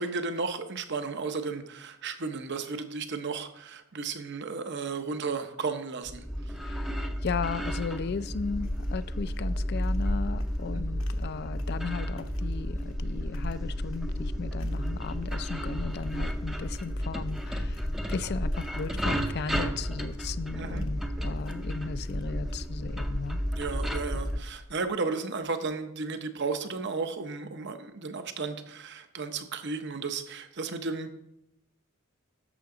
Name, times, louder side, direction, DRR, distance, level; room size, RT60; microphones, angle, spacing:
voice 1, 0.0-6.2 10.7-10.8 20.6-20.9 23.5-31.2, right 4 dB, 55° right, 8 dB, 0.9 m, -34 dB
sound 1, 6.1-24.4, equal, ahead, 0.6 m, -33 dB
voice 2, 6.6-23.4, left 5 dB, 50° left, 14 dB, 0.4 m, -36 dB
sound 2, 7.9-24.7, left 1 dB, 65° left, 1.0 m, -38 dB
11.0 x 7.0 x 3.8 m, 0.82 s
head